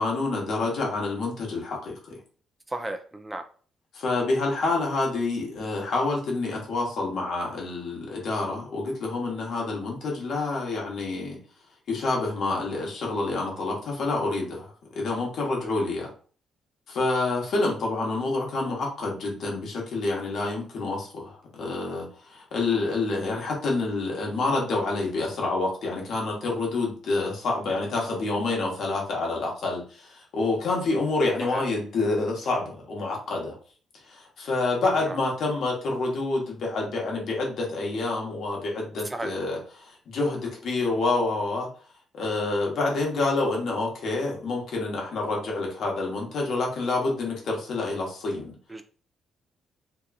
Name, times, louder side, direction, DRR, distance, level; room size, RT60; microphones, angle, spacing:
voice 1, 0.0-2.2 3.9-11.4 11.9-16.1 16.9-33.6 33.9-41.7 42.1-48.5, left 3 dB, 65° left, -1 dB, 0.9 m, -28 dB
voice 2, 2.7-3.4 31.5-31.6 35.0-35.2 39.1-39.3 48.7-48.8, right 1 dB, 15° right, 7 dB, 0.3 m, -34 dB
2.8 x 2.3 x 2.3 m, 0.42 s
cardioid pair, 90°, 0 cm